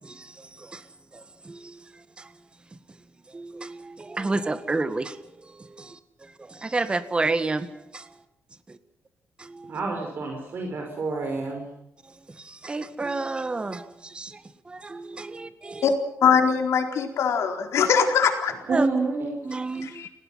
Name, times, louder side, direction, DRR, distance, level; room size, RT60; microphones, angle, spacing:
voice 1, 0.0-0.9 1.1-2.3 3.3-8.1 8.7-8.8 9.4-9.7 12.0-15.9 18.7-18.9 19.4-20.1, right 3 dB, 20° right, 11 dB, 1.8 m, -31 dB
voice 2, 9.7-11.6 18.7-19.5, right 3 dB, 50° right, 2 dB, 5.1 m, -28 dB
voice 3, 16.2-18.5 19.8-20.1, left 7 dB, 75° left, 4 dB, 4.3 m, -22 dB
30.0 x 19.5 x 5.9 m, 0.81 s
cardioid pair, 140°, 5 cm